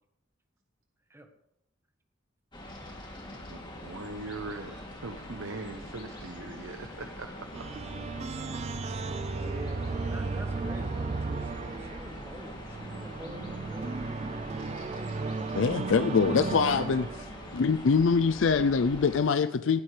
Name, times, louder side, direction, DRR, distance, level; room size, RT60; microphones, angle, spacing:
sound 1, 2.5-19.2, left 1 dB, 25° left, 2.8 m, -44 dB
voice 1, 3.5-8.0, right 3 dB, 85° right, 6 dB, 0.9 m, -41 dB
sound 2, 7.5-17.6, right 4 dB, 30° right, 0.3 m, -35 dB
voice 2, 9.3-14.1, right 1 dB, 15° right, 6 dB, 1.3 m, -46 dB
voice 3, 15.5-17.3 17.5-19.8, left 5 dB, 70° left, 11 dB, 0.4 m, -24 dB
18.0 x 12.0 x 3.3 m, 0.78 s
head